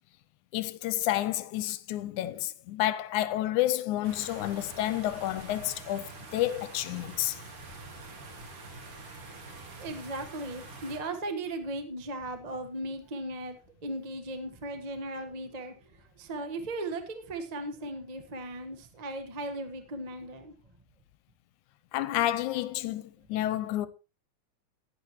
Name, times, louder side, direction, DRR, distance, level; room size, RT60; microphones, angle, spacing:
voice 1, 0.5-7.4 21.9-23.9, left 14 dB, 80° left, 2.1 m, -30 dB
sound 1, 4.0-11.0, right 3 dB, 50° right, 2.8 m, -46 dB
voice 2, 9.8-20.5, right 1 dB, 75° right, 0.3 m, -37 dB
15.5 x 11.0 x 3.1 m
omnidirectional pair, 3.5 m